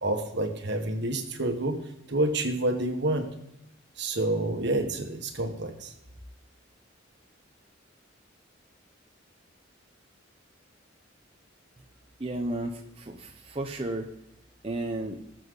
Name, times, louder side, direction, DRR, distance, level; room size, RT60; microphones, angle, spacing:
voice 1, 0.0-1.8 2.1-3.3 4.0-5.9, right 2 dB, 60° right, 5 dB, 1.6 m, -28 dB
voice 2, 12.2-14.0 14.6-15.2, right 1 dB, 30° right, 2 dB, 0.9 m, -33 dB
19.5 x 7.6 x 4.0 m, 0.83 s
head